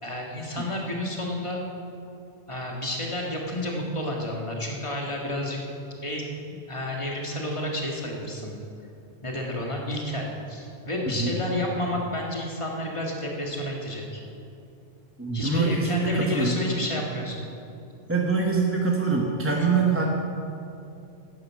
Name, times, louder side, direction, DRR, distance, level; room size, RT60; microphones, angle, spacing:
voice 1, 0.0-1.6 2.5-8.6 9.2-14.2 15.3-17.5 19.5-19.7, left 1 dB, 25° left, -1 dB, 1.8 m, -31 dB
voice 2, 11.0-11.4 15.2-16.6 18.1-20.0, right 4 dB, 10° right, -1 dB, 1.0 m, -24 dB
11.0 x 9.6 x 7.5 m, 2.7 s
omnidirectional pair, 1.3 m